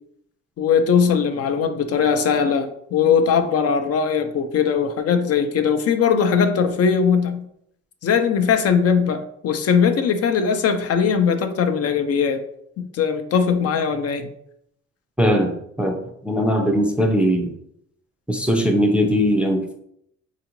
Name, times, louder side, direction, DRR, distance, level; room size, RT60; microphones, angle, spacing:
voice 1, 0.6-7.4 8.0-12.4 12.8-14.3, left 6 dB, 55° left, 8 dB, 0.4 m, -20 dB
voice 2, 15.2-17.5 18.3-19.7, equal, 5° right, 3 dB, 0.4 m, -20 dB
3.6 x 2.4 x 2.9 m, 0.72 s
cardioid pair, 90°, 30 cm